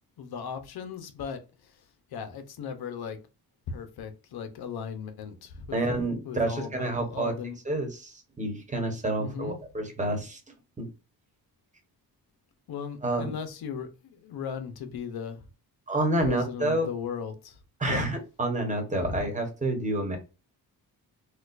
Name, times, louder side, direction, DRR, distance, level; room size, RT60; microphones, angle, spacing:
voice 1, 0.2-1.7 2.1-3.2 3.7-5.8 6.2-7.6 9.2-9.6 12.7-15.4 16.2-17.6 17.9-18.0 19.0-19.2, left 6 dB, 75° left, 0.8 m, -37 dB
voice 2, 5.7-7.3 7.6-10.4 10.8-10.9 13.0-13.3 15.9-16.9 17.8-20.2, right 1 dB, 20° right, 1.2 m, -28 dB
4.3 x 2.3 x 2.5 m
cardioid pair, 105°, 38 cm